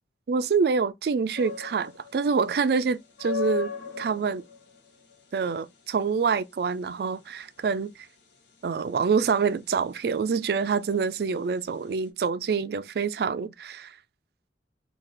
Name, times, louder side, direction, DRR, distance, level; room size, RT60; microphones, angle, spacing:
voice 1, 0.3-4.4 5.3-8.1 8.6-14.0, right 5 dB, 60° right, 0.3 m, -26 dB
sound 1, 1.3-12.1, left 8 dB, 80° left, 0.9 m, -39 dB
3.3 x 2.4 x 3.8 m
head